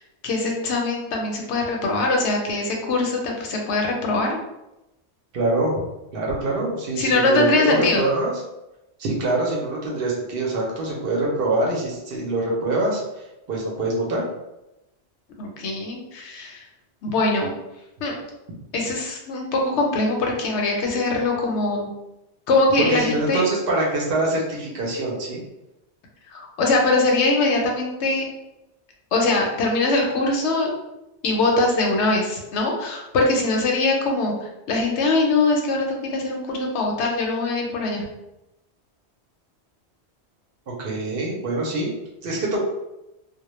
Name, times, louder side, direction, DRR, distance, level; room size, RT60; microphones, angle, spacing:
voice 1, 0.0-4.4 7.0-8.0 15.4-16.7 17.0-17.5 18.0-18.2 18.7-21.9 22.5-23.4 26.3-28.2 29.1-30.8 31.2-38.0, left 2 dB, 80° left, 1 dB, 0.9 m, -22 dB
voice 2, 5.3-5.7 6.1-8.3 9.0-13.0 13.5-14.2 22.9-25.4 40.8-41.9 42.2-42.6, right 2 dB, 65° right, -2 dB, 0.7 m, -24 dB
2.1 x 2.1 x 2.9 m, 0.93 s
omnidirectional pair, 1.1 m